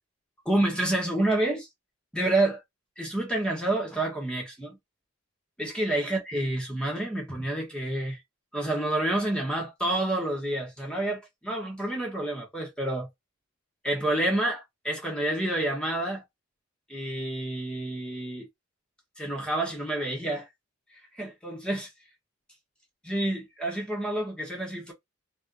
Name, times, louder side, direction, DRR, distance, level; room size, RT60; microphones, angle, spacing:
voice 1, 0.4-1.7 2.1-2.6 3.0-4.8 5.6-8.2 8.5-13.1 13.8-16.2 16.9-18.5 19.2-20.5 21.1-21.9 23.0-24.9, right 1 dB, 5° left, 1.4 m, -28 dB
3.6 x 2.5 x 4.0 m
head